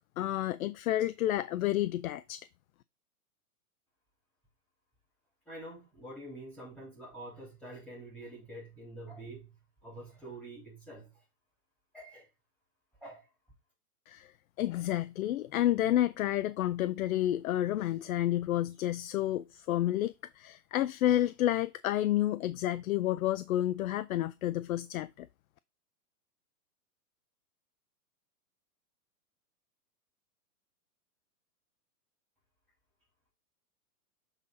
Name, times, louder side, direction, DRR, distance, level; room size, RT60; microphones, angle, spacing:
voice 1, 0.2-2.4 14.1-14.3 14.6-25.3, left 13 dB, 65° left, 0.6 m, -30 dB
voice 2, 5.5-9.5 9.8-11.1 11.9-12.3 13.0-13.3, right 1 dB, 5° left, 3.2 m, -46 dB
7.1 x 4.0 x 3.8 m
hypercardioid pair, 135°, 46 cm